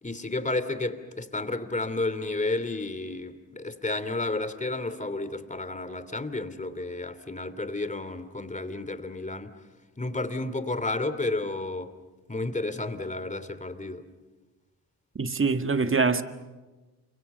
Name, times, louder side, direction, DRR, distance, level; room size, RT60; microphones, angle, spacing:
voice 1, 0.0-9.5 10.0-11.9 12.3-14.0, left 2 dB, 15° left, 2.8 m, -31 dB
voice 2, 15.2-16.2, right 4 dB, 30° right, 1.8 m, -24 dB
29.5 x 25.0 x 7.0 m
hypercardioid pair, 45°, 44 cm